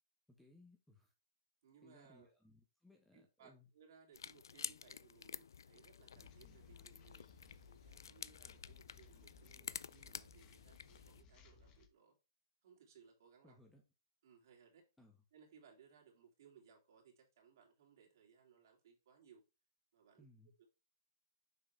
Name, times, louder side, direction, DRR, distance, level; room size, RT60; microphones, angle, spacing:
voice 1, 0.3-1.1 1.8-3.7 13.4-13.8 15.0-15.2 20.2-20.5, left 1 dB, 5° left, 1.1 m, -65 dB
voice 2, 1.6-2.3 3.1-7.3 7.7-12.1 12.6-13.6 14.2-14.9 15.3-19.4 19.9-20.3 20.6-20.7, right 6 dB, 60° right, 2.9 m, -65 dB
sound 1, 4.1-11.2, left 7 dB, 85° left, 0.3 m, -51 dB
sound 2, 6.1-11.9, left 5 dB, 30° left, 1.1 m, -63 dB
6.4 x 4.9 x 3.3 m
hypercardioid pair, 135°, 2 cm